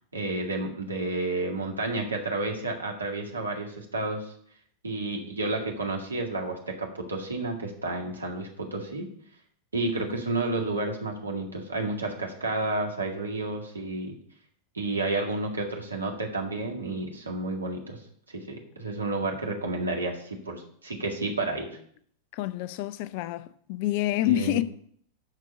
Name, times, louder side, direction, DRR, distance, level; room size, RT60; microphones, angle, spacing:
voice 1, 0.1-4.3 4.8-9.1 9.7-14.2 14.7-18.0 18.3-21.7 24.3-24.6, right 2 dB, 75° right, 2.0 m, -31 dB
voice 2, 22.3-24.6, left 15 dB, 45° left, 0.5 m, -28 dB
12.5 x 4.5 x 6.8 m
figure-of-eight pair, 90°, 0 cm